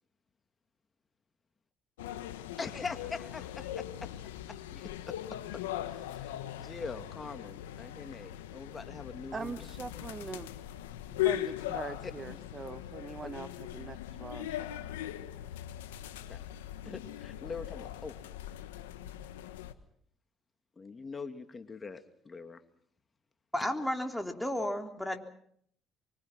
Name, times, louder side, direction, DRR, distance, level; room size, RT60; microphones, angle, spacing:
sound 1, 2.0-19.7, left 13 dB, 90° left, 1.3 m, -40 dB
voice 1, 2.6-3.8 4.5-5.1 5.9-9.5 13.2-13.3 16.3-16.4 16.8-18.2 20.8-22.6, left 4 dB, 30° left, 7 dB, 2.5 m, -43 dB
voice 2, 9.3-10.5 11.1-14.9, right 5 dB, 35° right, 12 dB, 1.1 m, -42 dB
voice 3, 23.5-25.2, left 1 dB, 5° left, 3 dB, 3.6 m, -33 dB
25.0 x 24.5 x 5.9 m, 0.65 s
hypercardioid pair, 60°, 0 cm